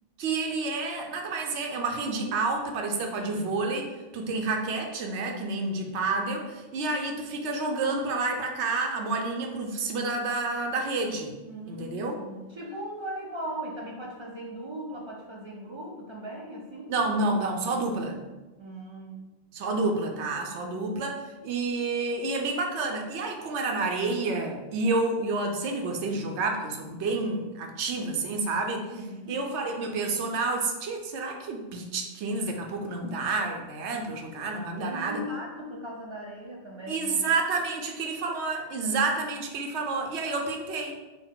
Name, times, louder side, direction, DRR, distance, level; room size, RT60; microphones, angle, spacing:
voice 1, 0.2-11.3 11.7-12.2 16.9-18.2 19.5-28.9 29.3-35.2 36.9-40.9, right 3 dB, 85° right, 2 dB, 0.9 m, -29 dB
voice 2, 11.5-16.9 18.6-19.2 28.9-29.4 34.7-37.3, equal, 50° right, -2 dB, 0.3 m, -38 dB
3.9 x 2.1 x 3.7 m, 1.1 s
omnidirectional pair, 1.1 m